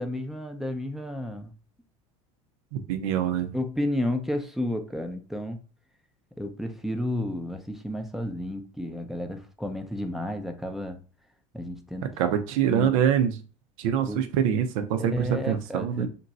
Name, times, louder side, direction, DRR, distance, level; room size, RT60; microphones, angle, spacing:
voice 1, 0.0-1.5 3.5-5.6 6.4-11.0 11.5-12.1 12.7-12.9 14.1-14.3 15.0-16.1, left 1 dB, ahead, 0.5 m, -32 dB
voice 2, 2.7-3.6 12.2-13.4 13.8-16.1, right 9 dB, 75° right, 0.6 m, -25 dB
2.6 x 2.2 x 4.0 m
supercardioid pair, 95°, 17 cm